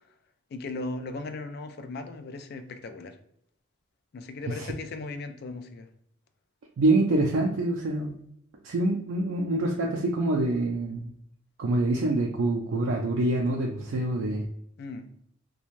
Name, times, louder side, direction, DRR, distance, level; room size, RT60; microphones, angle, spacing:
voice 1, 0.5-3.2 4.1-5.9 14.8-15.1, left 3 dB, 50° left, 8 dB, 0.3 m, -37 dB
voice 2, 6.8-8.2 8.6-11.1 11.6-14.4, right 2 dB, 80° right, 0 dB, 0.4 m, -26 dB
2.5 x 2.2 x 3.0 m, 0.72 s
head